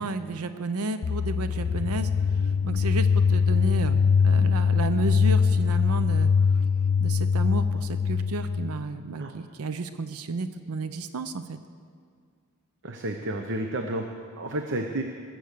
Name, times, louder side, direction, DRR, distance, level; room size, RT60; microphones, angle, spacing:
voice 1, 0.0-6.3 7.0-11.6, right 3 dB, 85° right, 10 dB, 0.6 m, -32 dB
sound 1, 1.0-8.8, left 6 dB, 65° left, 0.4 m, -23 dB
voice 2, 12.8-14.0 14.4-15.0, right 1 dB, 60° right, 4 dB, 0.8 m, -30 dB
20.0 x 7.8 x 6.7 m, 2.1 s
head